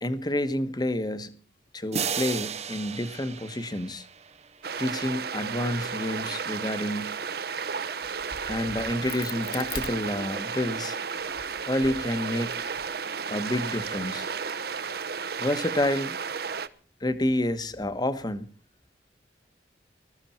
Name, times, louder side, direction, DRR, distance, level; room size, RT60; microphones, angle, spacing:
voice 1, 0.0-1.4 1.7-4.1 4.8-7.2 8.5-11.0 11.7-12.8 13.3-14.3 15.4-16.2 17.0-18.4, left 1 dB, 25° left, 12 dB, 1.4 m, -29 dB
sound 1, 1.9-4.7, right 7 dB, 40° right, 0.8 m, -34 dB
sound 2, 4.6-16.7, right 6 dB, 60° right, 1.1 m, -33 dB
Crack, 8.0-10.7 11.2-12.9, left 5 dB, 55° left, 1.9 m, -42 dB
20.5 x 14.0 x 4.4 m, 0.40 s
head